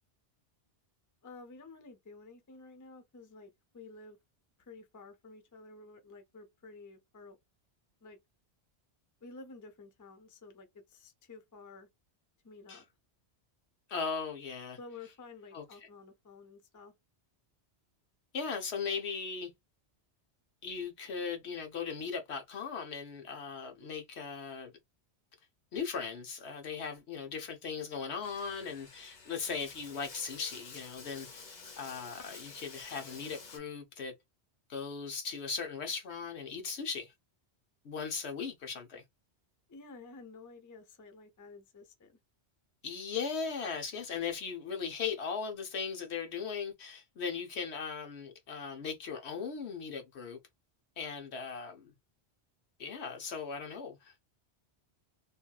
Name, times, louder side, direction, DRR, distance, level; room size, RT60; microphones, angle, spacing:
voice 1, 1.2-4.2 4.6-7.4 8.0-8.2 9.2-11.9 12.4-12.8 14.8-16.9 39.7-42.1, left 3 dB, 25° left, 0.5 m, -51 dB
voice 2, 13.9-14.8 15.5-15.6 18.3-19.5 20.6-24.7 25.7-31.4 31.8-34.1 34.7-37.1 37.8-39.0 42.8-50.4 51.0-51.9 52.8-54.1, left 5 dB, 75° left, 1.1 m, -38 dB
Bathtub (filling or washing), 28.2-33.6, left 4 dB, 45° left, 0.9 m, -50 dB
2.8 x 2.7 x 2.3 m
omnidirectional pair, 1.1 m